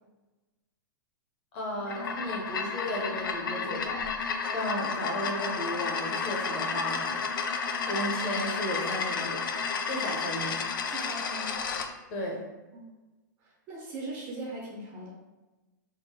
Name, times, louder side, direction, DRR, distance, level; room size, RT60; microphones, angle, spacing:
voice 1, 1.5-7.2 7.9-9.4 9.8-10.6 12.1-12.4, equal, 25° left, -2 dB, 0.7 m, -34 dB
sound 1, 1.8-11.9, left 5 dB, 90° left, 0.5 m, -32 dB
voice 2, 10.8-11.6 12.7-12.9 13.7-15.1, right 2 dB, 20° right, -3 dB, 0.6 m, -39 dB
3.7 x 2.5 x 4.6 m, 1.1 s
hypercardioid pair, 175°, 11 cm